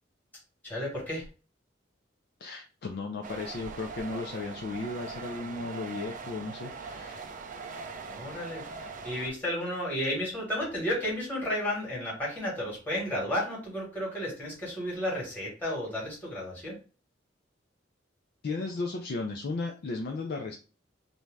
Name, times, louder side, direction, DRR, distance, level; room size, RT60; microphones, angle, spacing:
voice 1, 0.6-1.2 8.1-16.8, left 1 dB, 10° left, -5 dB, 1.3 m, -33 dB
voice 2, 2.4-7.2 18.4-20.5, left 3 dB, 55° left, 2 dB, 0.4 m, -35 dB
sound 1, 3.2-9.3, right 4 dB, 45° right, 0.4 m, -41 dB
2.6 x 2.2 x 3.1 m, 0.36 s
head